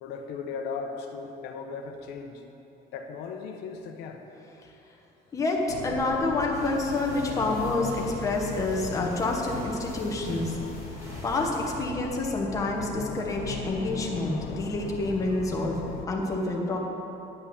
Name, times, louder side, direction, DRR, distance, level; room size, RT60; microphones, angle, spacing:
voice 1, 0.0-2.4 2.9-4.2, left 5 dB, 75° left, 4 dB, 0.9 m, -37 dB
voice 2, 5.3-10.6 11.2-15.8 16.1-16.8, left 2 dB, 20° left, -1 dB, 1.1 m, -28 dB
sound 1, 5.7-16.1, left 7 dB, 60° left, 0.5 m, -38 dB
sound 2, 6.5-11.8, equal, 15° right, 2.7 m, -44 dB
10.0 x 5.6 x 8.3 m, 3.0 s
cardioid pair, 175°, 17 cm